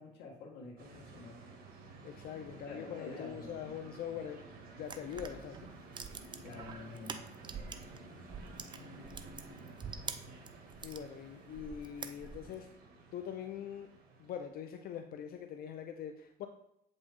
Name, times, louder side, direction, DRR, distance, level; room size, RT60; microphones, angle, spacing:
voice 1, 0.0-1.4 2.6-3.9 6.4-7.2, left 3 dB, 85° left, -2 dB, 1.8 m, -48 dB
sound 1, 0.8-14.5, right 3 dB, 60° right, 1.8 m, -53 dB
voice 2, 2.0-4.4 4.8-5.6 8.8-9.2 10.8-12.7 13.1-13.9 14.2-16.5, left 8 dB, 60° left, 6 dB, 0.6 m, -43 dB
sound 2, 4.8-8.0 8.3-11.0 11.5-12.6, right 5 dB, 25° right, 0.6 m, -45 dB
7.9 x 5.4 x 3.6 m, 0.78 s
cardioid pair, 110°, 17 cm